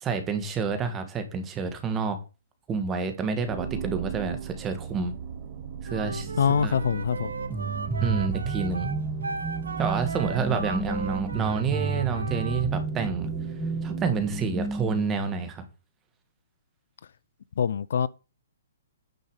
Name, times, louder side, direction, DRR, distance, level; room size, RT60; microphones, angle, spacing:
voice 1, 0.0-2.2 2.7-5.1 5.8-6.3 6.6-6.7 8.0-8.9 9.8-13.3 13.8-15.6, right 5 dB, 20° right, 1.7 m, -29 dB
sound 1, 3.5-15.4, right 6 dB, 40° right, 1.4 m, -36 dB
Wind instrument woodwind instrument, 5.9-12.7, right 4 dB, 85° right, 1.1 m, -37 dB
voice 2, 6.4-7.3 10.5-10.6 17.6-18.1, left 7 dB, 70° left, 0.4 m, -24 dB
sound 2, 7.5-15.1, right 4 dB, 5° right, 0.5 m, -33 dB
9.4 x 5.5 x 4.9 m
hypercardioid pair, 135°, 0 cm